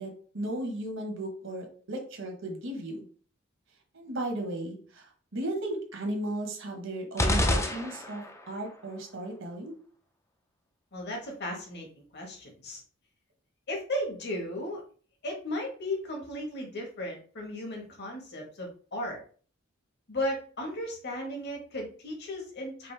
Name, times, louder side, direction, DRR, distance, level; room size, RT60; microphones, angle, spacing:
voice 1, 0.0-3.0 3.9-9.8, right 1 dB, 65° right, 2 dB, 1.2 m, -35 dB
sound 1, 7.2-8.5, left 1 dB, 15° left, 0.5 m, -27 dB
voice 2, 10.9-12.8 13.7-14.8 15.2-19.2 20.1-22.9, left 1 dB, 55° left, 1 dB, 1.4 m, -35 dB
5.1 x 2.5 x 3.3 m, 0.42 s
head